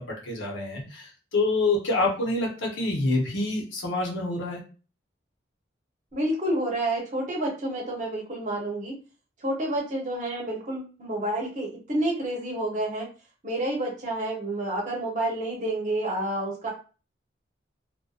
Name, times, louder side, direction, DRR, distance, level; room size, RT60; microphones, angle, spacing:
voice 1, 0.0-4.6, left 2 dB, 80° left, -1 dB, 0.8 m, -27 dB
voice 2, 6.1-8.9 9.4-13.1 13.4-16.7, right 1 dB, 40° right, -1 dB, 0.8 m, -29 dB
2.6 x 2.1 x 2.3 m, 0.36 s
head